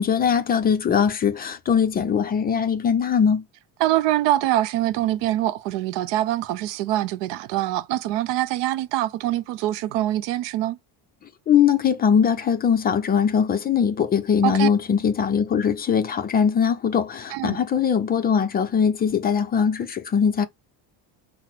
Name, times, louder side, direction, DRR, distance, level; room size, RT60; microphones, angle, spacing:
voice 1, 0.0-3.4 11.5-20.5, left 7 dB, 25° left, 0.4 m, -21 dB
voice 2, 3.8-10.8 14.4-14.7 17.3-17.6, right 14 dB, 90° right, 0.6 m, -24 dB
5.8 x 2.0 x 4.5 m
cardioid pair, 175°, 42 cm